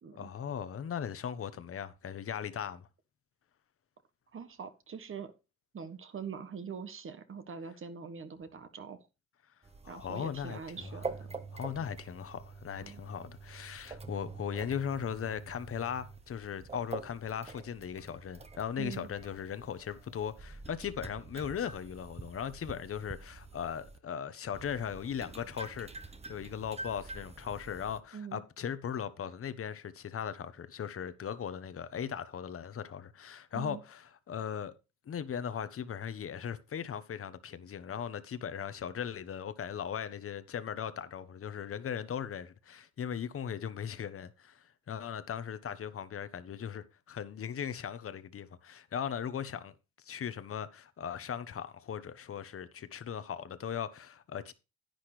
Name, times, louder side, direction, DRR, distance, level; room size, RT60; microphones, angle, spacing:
voice 1, 0.2-2.9 9.8-10.9 11.5-25.9 26.3-34.0 34.3-34.7 35.1-49.7 50.0-54.5, left 8 dB, 50° left, 1.1 m, -38 dB
voice 2, 4.3-5.3 5.7-9.0 9.9-11.3 12.8-13.0 18.8-19.1 28.1-28.4 33.5-33.8, right 6 dB, 45° right, 1.4 m, -43 dB
sound 1, 9.6-24.0 24.5-28.0, right 3 dB, 20° right, 1.0 m, -46 dB
10.5 x 9.5 x 3.3 m
cardioid pair, 90°, 30 cm